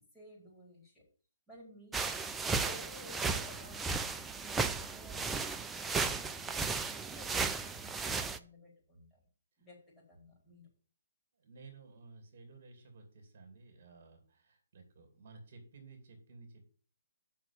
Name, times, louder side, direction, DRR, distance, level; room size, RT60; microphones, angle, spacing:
voice 1, 0.1-1.0 1.5-2.2 2.6-6.6 7.1-9.2 9.6-9.8 10.1-10.7, left 1 dB, 10° left, -6 dB, 4.8 m, -55 dB
sound 1, 1.9-8.4, right 4 dB, 10° right, 0.5 m, -35 dB
voice 2, 11.4-16.7, right 3 dB, 50° right, 4 dB, 2.8 m, -55 dB
7.3 x 6.0 x 7.3 m, 0.41 s
figure-of-eight pair, 140°, 0 cm